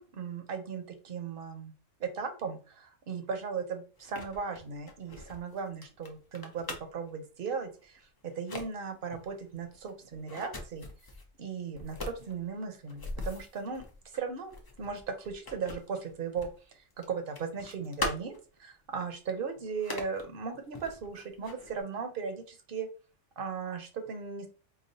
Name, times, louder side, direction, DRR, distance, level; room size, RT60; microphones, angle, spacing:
voice 1, 0.0-1.7 2.0-6.7 6.9-10.9 11.4-16.5 16.7-18.3 18.6-22.9 23.4-24.5, right 5 dB, 55° right, 6 dB, 0.8 m, -37 dB
sound 1, 4.0-7.1 7.8-8.0 8.3-8.7 9.1-11.3 11.7-16.6 16.9-18.6 19.0-19.1 19.7-20.2 20.7-21.8, left 2 dB, 30° left, 0.4 m, -41 dB
4.8 x 2.3 x 2.7 m, 0.36 s
omnidirectional pair, 1.2 m